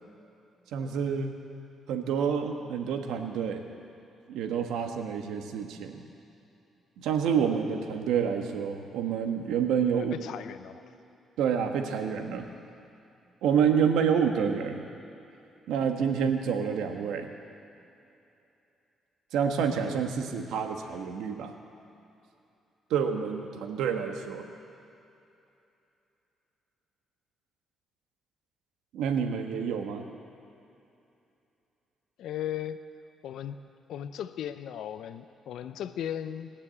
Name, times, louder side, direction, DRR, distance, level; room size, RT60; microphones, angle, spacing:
voice 1, 0.7-1.4 1.9-3.6 4.3-6.0 7.0-10.1 11.4-12.5 13.4-14.9 15.7-17.3 19.3-21.5 22.9-24.4 28.9-30.0, right 7 dB, 85° right, 5 dB, 1.2 m, -28 dB
voice 2, 10.0-10.8 32.2-32.8 33.2-33.6 33.9-36.5, left 10 dB, 80° left, 11 dB, 0.6 m, -36 dB
20.5 x 7.0 x 8.5 m, 2.8 s
cardioid pair, 90°, 0 cm